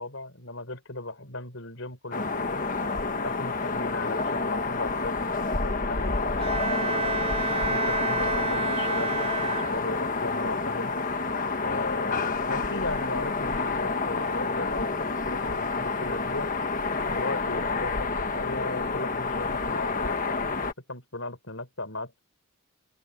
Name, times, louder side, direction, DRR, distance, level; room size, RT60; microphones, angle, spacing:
voice 1, 0.0-2.6 3.2-6.2 6.8-11.0 11.6-16.5 17.1-22.2, left 2 dB, 60° left, 6.3 m, -37 dB
sound 1, 2.1-20.7, left 3 dB, 35° left, 1.3 m, -29 dB
Bowed string instrument, 6.4-10.2, right 4 dB, 30° right, 4.5 m, -30 dB
open air
head